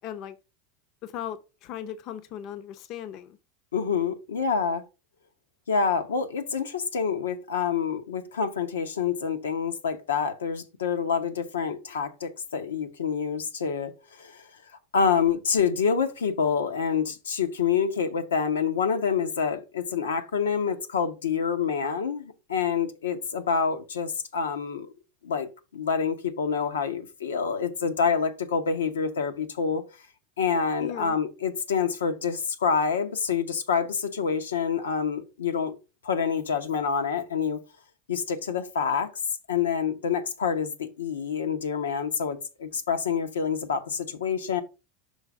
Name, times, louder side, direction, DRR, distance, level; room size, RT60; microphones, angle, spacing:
voice 1, 0.0-0.4 1.0-3.4 30.8-31.2, left 10 dB, 55° left, 0.7 m, -37 dB
voice 2, 3.7-4.8 5.7-14.4 14.9-24.9 25.2-29.8 30.4-35.8 36.0-37.6 38.1-39.1 39.5-44.6, left 6 dB, 90° left, 0.8 m, -27 dB
5.6 x 4.0 x 4.6 m
hypercardioid pair, 95°, 0 cm